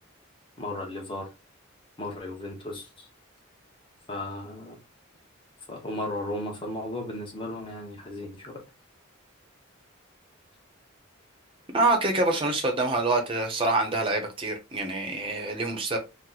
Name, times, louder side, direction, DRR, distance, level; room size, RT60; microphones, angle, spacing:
voice 1, 0.6-1.3 2.0-3.1 4.1-4.8 5.7-8.6, left 1 dB, 25° left, 0.9 m, -35 dB
voice 2, 11.7-16.0, right 2 dB, 25° right, 0.6 m, -26 dB
2.9 x 2.1 x 3.8 m
head